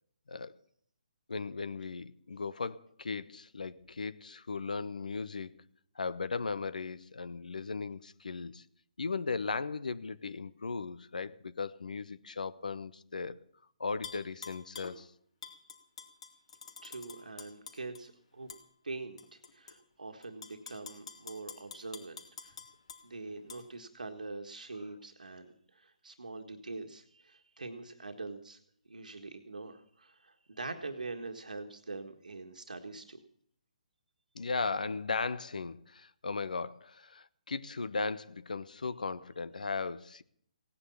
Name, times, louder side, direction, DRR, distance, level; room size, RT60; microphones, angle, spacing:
voice 1, 1.3-5.5 6.0-8.6 9.0-13.4 13.8-15.1 34.3-40.2, left 4 dB, 80° left, 1.0 m, -37 dB
Tap / Glass, 14.0-15.0 15.4-18.0 18.5-18.6 19.2-19.7 20.2-23.0 23.5-23.6, left 6 dB, 50° left, 2.5 m, -47 dB
voice 2, 16.8-18.5 18.8-22.6 23.0-28.6 28.9-33.2, right 3 dB, 85° right, 1.7 m, -44 dB
17.5 x 9.9 x 7.1 m
hypercardioid pair, 150°, 4 cm